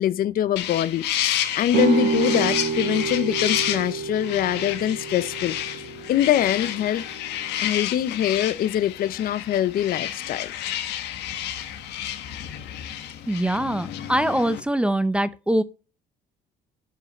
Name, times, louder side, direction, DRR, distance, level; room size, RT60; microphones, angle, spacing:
voice 1, 0.0-5.6 6.1-7.1 7.6-10.5, left 11 dB, 60° left, 0.7 m, -24 dB
sound 1, 0.6-14.6, left 11 dB, 85° left, 1.5 m, -30 dB
sound 2, 1.7-7.5, right 5 dB, 55° right, 1.5 m, -28 dB
voice 2, 13.3-15.6, right 1 dB, 5° right, 0.7 m, -23 dB
12.0 x 6.6 x 4.2 m
cardioid pair, 110°, 17 cm